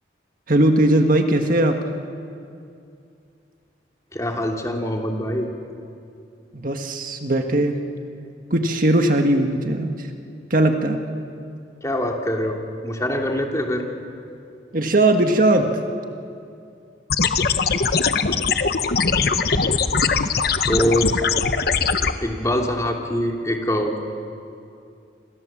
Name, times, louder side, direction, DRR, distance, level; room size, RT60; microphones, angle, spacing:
voice 1, 0.5-1.8 6.6-7.8 8.5-9.9 10.5-11.0 14.7-15.7, right 1 dB, 50° right, 4 dB, 1.7 m, -18 dB
voice 2, 4.1-5.5 11.8-12.6 12.8-13.9 20.7-21.1 22.2-23.9, equal, 20° left, 1 dB, 2.8 m, -23 dB
sound 1, 17.1-22.1, left 5 dB, 55° left, 1.1 m, -21 dB
27.5 x 27.5 x 7.4 m, 2.5 s
head